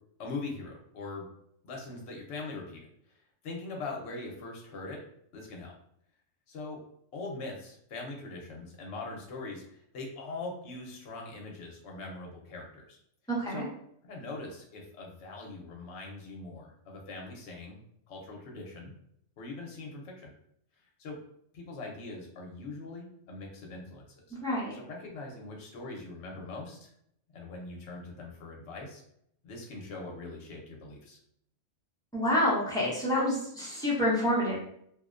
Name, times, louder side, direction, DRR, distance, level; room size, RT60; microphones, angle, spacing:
voice 1, 0.2-1.2 1.6-2.8 3.4-5.0 5.3-5.7 6.5-6.8 7.1-13.0 13.5-13.7 14.0-17.8 18.1-18.9 19.4-20.3 21.0-21.2 21.5-24.4 24.7-26.9 27.3-29.0 29.4-31.2, left 3 dB, 65° left, 0 dB, 0.9 m, -41 dB
voice 2, 13.3-13.7 24.3-24.7 32.1-34.6, left 1 dB, 5° left, -7 dB, 0.6 m, -28 dB
2.5 x 2.1 x 2.4 m, 0.70 s
omnidirectional pair, 1.3 m